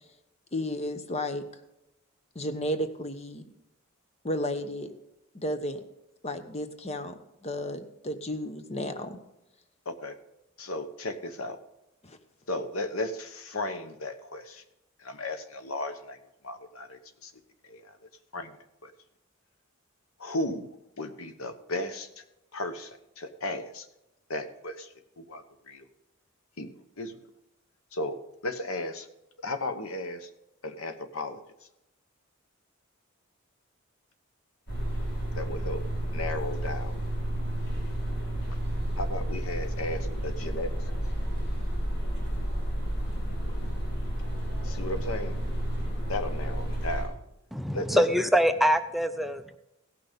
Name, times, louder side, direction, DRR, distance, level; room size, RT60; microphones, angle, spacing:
voice 1, 0.5-1.4 2.3-3.4 4.2-4.9 5.3-5.8 6.2-9.2 12.0-12.2 47.9-48.1, left 1 dB, 30° left, 8 dB, 1.0 m, -33 dB
voice 2, 10.6-11.6 12.5-14.6 15.0-16.2 16.4-17.3 17.6-18.0 18.3-18.5 18.8-18.9 20.2-20.7 21.0-22.2 22.5-23.9 24.3-24.9 25.2-25.9 26.6-26.7 27.0-27.1 27.9-28.2 28.4-29.1 29.4-30.3 30.6-31.4 35.3-35.8 36.1-37.0 39.0-40.8 44.6-45.4 46.1-47.2 47.7-48.0, left 2 dB, 90° left, 9 dB, 1.2 m, -35 dB
sound 1, 34.7-47.1, right 1 dB, 55° left, 4.8 m, -31 dB
voice 3, 47.5-49.6, equal, ahead, 9 dB, 0.4 m, -24 dB
16.5 x 6.0 x 5.2 m, 0.91 s
head